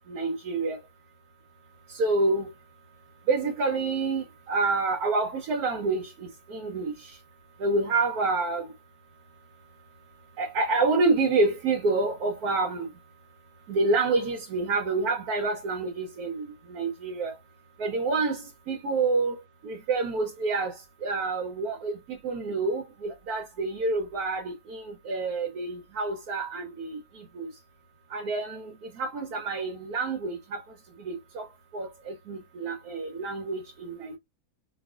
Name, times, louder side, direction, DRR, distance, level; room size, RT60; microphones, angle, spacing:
voice 1, 0.1-0.8 1.9-2.5 3.3-7.2 7.6-8.7 10.4-12.9 13.7-17.4 17.8-27.5 28.1-30.6 31.0-31.5 31.7-34.2, right 3 dB, 80° right, 1.3 m, -28 dB
4.5 x 2.4 x 2.4 m
omnidirectional pair, 1.6 m